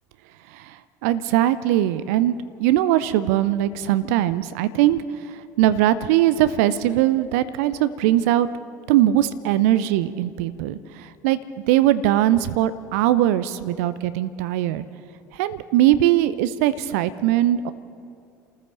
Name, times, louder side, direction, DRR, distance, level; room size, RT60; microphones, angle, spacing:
voice 1, 0.5-8.5 8.9-11.4 11.7-14.8 15.3-17.7, right 13 dB, 60° right, 14 dB, 0.7 m, -21 dB
28.5 x 14.0 x 6.9 m, 2.4 s
figure-of-eight pair, 65°, 9 cm